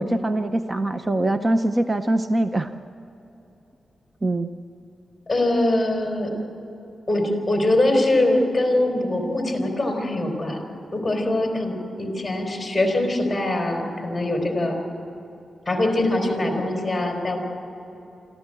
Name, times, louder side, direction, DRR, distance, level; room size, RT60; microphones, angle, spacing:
voice 1, 0.0-2.7 4.2-4.5, right 1 dB, 20° right, 8 dB, 0.6 m, -23 dB
voice 2, 5.3-6.3 7.1-10.6 10.9-14.8 15.7-17.4, left 1 dB, 10° left, 1 dB, 3.9 m, -22 dB
25.0 x 14.5 x 7.7 m, 3.0 s
wide cardioid pair, 140°, 0 cm